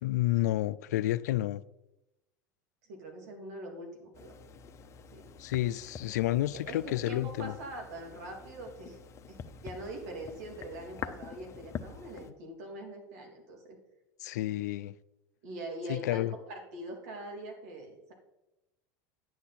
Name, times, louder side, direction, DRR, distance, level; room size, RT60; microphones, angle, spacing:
voice 1, 0.0-1.6 5.4-7.5 14.2-14.9 15.9-16.3, left 15 dB, 85° left, 0.4 m, -30 dB
voice 2, 2.8-4.3 5.1-5.3 6.7-9.0 9.3-13.8 15.4-18.1, right 1 dB, 75° right, 3.0 m, -43 dB
sound 1, 4.1-12.3, left 7 dB, 35° left, 0.8 m, -46 dB
11.0 x 8.0 x 4.3 m
supercardioid pair, 110°, 9 cm